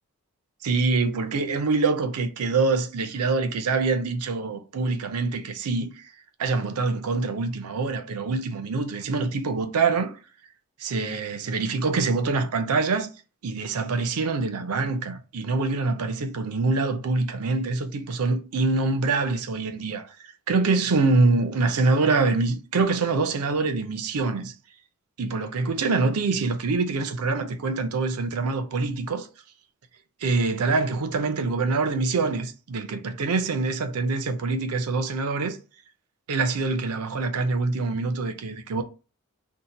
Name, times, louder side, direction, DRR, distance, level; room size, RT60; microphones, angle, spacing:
voice 1, 0.6-6.1 6.4-10.1 10.8-13.1 13.4-20.1 20.5-24.5 25.2-29.3 30.2-35.6 36.3-38.8, right 3 dB, 85° right, 0.5 m, -25 dB
2.8 x 2.1 x 3.9 m
head